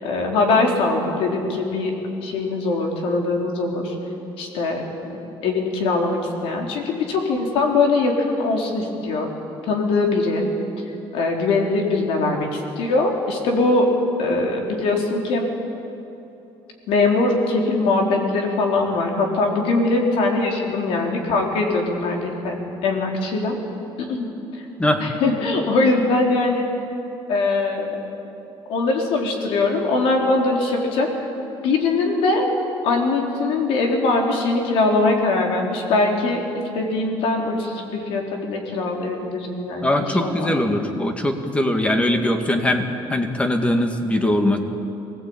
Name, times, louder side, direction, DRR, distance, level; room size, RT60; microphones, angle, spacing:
voice 1, 0.0-1.9 2.2-3.9 4.4-4.8 5.1-9.3 9.7-10.5 11.1-13.9 14.2-15.5 16.9-23.6 24.0-24.3 25.0-26.7 27.3-28.1 28.7-31.1 31.4-32.5 32.8-36.4 36.7-40.5, left 3 dB, 80° left, 1 dB, 4.1 m, -21 dB
voice 2, 39.8-44.6, left 1 dB, 10° left, 5 dB, 2.2 m, -21 dB
24.5 x 18.0 x 8.9 m, 3.0 s
cardioid pair, 130°, 10 cm